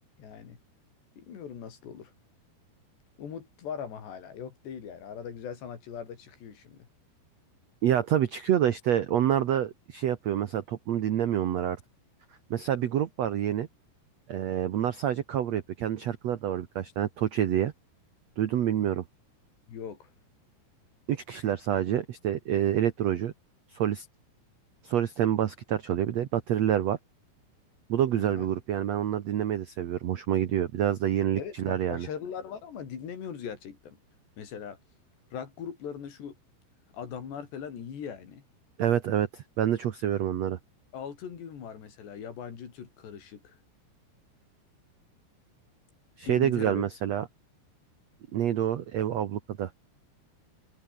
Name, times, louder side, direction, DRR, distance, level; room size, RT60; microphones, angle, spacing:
voice 1, 0.2-0.6 1.2-2.1 3.2-6.9 19.7-20.1 28.2-28.5 31.4-34.0 34.4-34.8 35.3-36.4 36.9-38.4 40.9-43.6 46.3-46.9, left 7 dB, 75° left, 6.0 m, -40 dB
voice 2, 7.8-11.8 12.5-13.7 14.3-17.7 18.4-19.0 21.1-23.3 23.7-24.1 24.8-27.0 27.9-32.1 38.8-40.6 46.2-47.3 48.3-49.7, right 10 dB, 90° right, 1.4 m, -27 dB
omnidirectional pair, 4.9 m